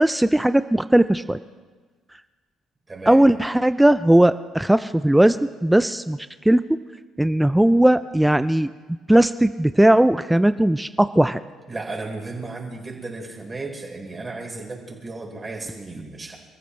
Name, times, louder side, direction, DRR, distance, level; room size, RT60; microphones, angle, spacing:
voice 1, 0.0-1.4 3.1-6.6 7.2-8.7 9.1-11.4, right 1 dB, 5° right, 13 dB, 0.5 m, -18 dB
voice 2, 2.9-3.2 11.7-16.4, right 3 dB, 25° right, -1 dB, 4.6 m, -34 dB
29.0 x 14.5 x 3.3 m, 1.4 s
hypercardioid pair, 50°, 0 cm